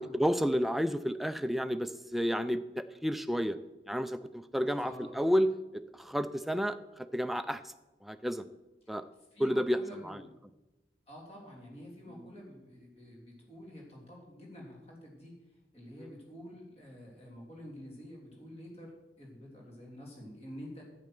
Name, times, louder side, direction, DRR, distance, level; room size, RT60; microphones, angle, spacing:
voice 1, 0.0-3.6 3.9-7.7 8.0-8.4 8.9-9.0 9.4-9.8 10.0-10.2 12.1-12.3, equal, ahead, 10 dB, 0.4 m, -31 dB
voice 2, 4.8-5.2 8.8-9.0 9.3-10.3 11.1-15.4 15.7-20.8, equal, 35° left, -2 dB, 3.3 m, -48 dB
10.5 x 8.6 x 6.0 m, 1.0 s
head